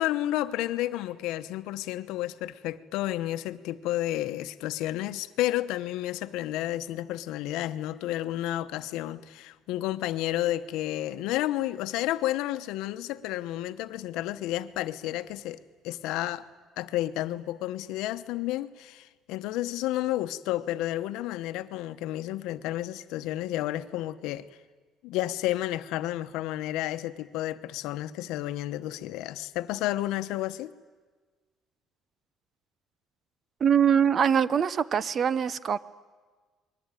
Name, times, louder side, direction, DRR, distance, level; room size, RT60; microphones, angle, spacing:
voice 1, 0.0-16.5 16.8-24.5 25.0-30.7, left 14 dB, 90° left, 1.0 m, -31 dB
voice 2, 33.6-35.8, right 8 dB, 35° right, 0.7 m, -23 dB
28.5 x 21.5 x 9.2 m
cardioid pair, 155°, 0 cm